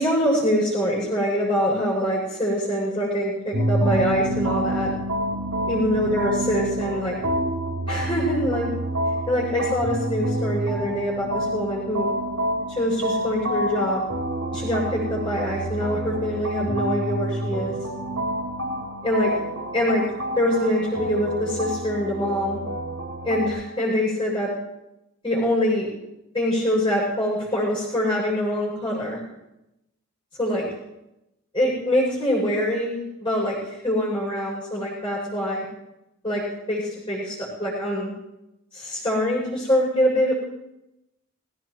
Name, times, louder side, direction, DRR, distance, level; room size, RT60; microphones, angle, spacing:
voice 1, 0.0-4.9 5.7-7.2 7.9-8.7 9.3-12.1 12.7-14.1 14.5-17.8 19.0-19.3 19.7-20.0 20.3-22.6 23.2-24.5 25.2-25.9 26.3-29.2 30.4-30.7 31.5-35.6 36.2-36.4 36.7-38.1 38.7-40.3, equal, 25° left, -5 dB, 6.8 m, -24 dB
sound 1, 3.5-23.5, right 1 dB, 85° right, 4.1 m, -28 dB
20.5 x 17.5 x 3.1 m, 0.91 s
head